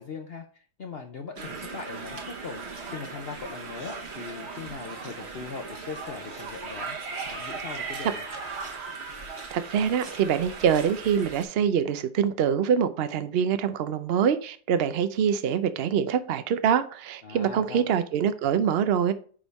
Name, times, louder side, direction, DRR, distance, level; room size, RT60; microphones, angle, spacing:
voice 1, 0.0-7.0 7.3-8.2 17.2-18.0, left 5 dB, 55° left, 0.7 m, -40 dB
sound 1, 1.4-11.4, right 4 dB, 45° right, 1.1 m, -38 dB
voice 2, 9.5-19.1, right 8 dB, 80° right, 0.5 m, -25 dB
9.7 x 3.5 x 4.0 m
omnidirectional pair, 1.8 m